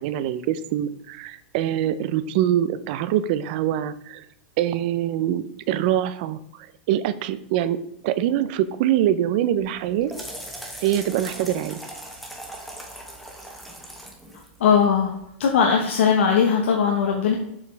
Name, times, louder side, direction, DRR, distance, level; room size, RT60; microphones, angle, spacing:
voice 1, 0.0-4.3 4.6-6.4 6.9-7.8 8.0-10.1 10.8-11.8, right 11 dB, 50° right, 14 dB, 0.5 m, -24 dB
sound 1, 9.6-15.2, right 1 dB, ahead, 1.1 m, -40 dB
voice 2, 14.6-15.1 15.4-17.4, left 6 dB, 90° left, 0 dB, 1.1 m, -19 dB
7.1 x 5.1 x 3.4 m, 0.77 s
supercardioid pair, 155°, 6 cm